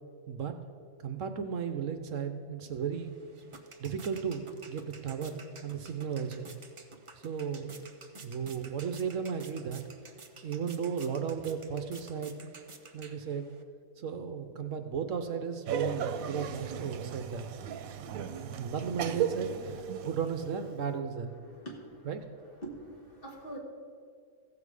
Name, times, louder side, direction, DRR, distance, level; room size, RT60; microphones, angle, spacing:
voice 1, 1.0-3.1 3.8-6.5 7.2-7.7 8.2-9.8 10.4-12.5 12.9-13.5 14.0-17.6 18.4-21.3 22.1-22.2, right 7 dB, 70° right, 8 dB, 1.0 m, -35 dB
sound 1, 2.9-13.6, right 3 dB, 45° right, 0.4 m, -52 dB
Laughter, 15.7-20.7, right 8 dB, 90° right, 1.1 m, -36 dB
voice 2, 21.3-22.2 22.6-23.6, right 1 dB, 40° left, -1 dB, 1.9 m, -45 dB
15.5 x 7.3 x 4.9 m, 2.2 s
omnidirectional pair, 1.4 m